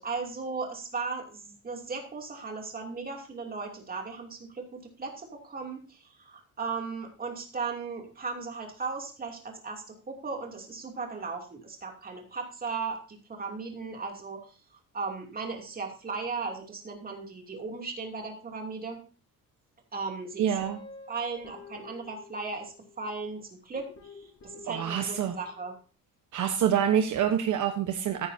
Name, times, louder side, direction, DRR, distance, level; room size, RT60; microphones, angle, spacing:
voice 1, 0.0-14.6 14.9-19.0 19.9-20.5 21.1-25.7, right 4 dB, 25° right, 2 dB, 2.8 m, -37 dB
voice 2, 20.4-20.8 24.7-25.3 26.3-28.3, right 9 dB, 60° right, 5 dB, 1.1 m, -26 dB
Guitar, 20.6-23.0 23.7-25.7, left 4 dB, 45° left, 5.0 m, -50 dB
14.5 x 9.8 x 2.8 m, 0.36 s
cardioid pair, 145°, 34 cm